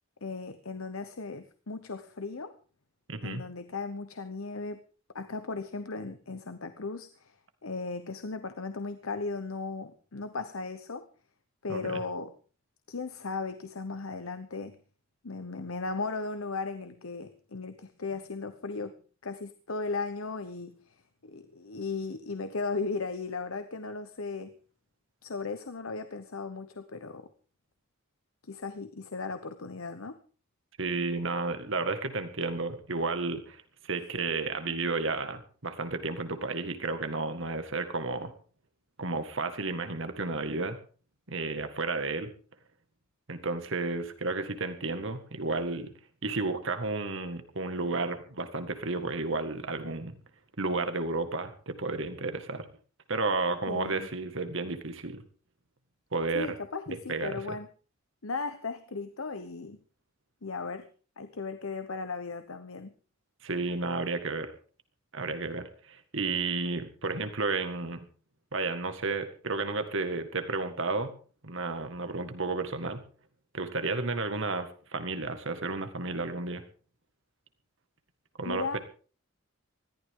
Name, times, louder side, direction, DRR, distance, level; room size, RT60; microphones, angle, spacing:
voice 1, 0.2-2.6 3.2-4.8 5.1-7.4 7.6-11.0 11.6-12.3 12.9-14.8 15.2-18.9 19.2-24.6 25.2-27.3 28.4-30.2 53.7-54.1 56.3-57.7 58.2-59.8 60.4-60.9 61.2-62.9 78.5-78.8, left 4 dB, 85° left, 10 dB, 1.1 m, -36 dB
voice 2, 3.1-3.4 11.7-12.0 30.8-38.3 39.0-40.8 41.3-42.3 43.3-45.9 46.2-50.2 50.6-52.7 53.1-55.2 56.1-56.6 57.1-57.6 63.4-64.5 65.1-68.1 68.5-71.1 71.4-73.0 73.5-76.6 78.4-78.8, right 3 dB, 65° right, 9 dB, 2.0 m, -32 dB
20.5 x 14.5 x 3.8 m, 0.39 s
head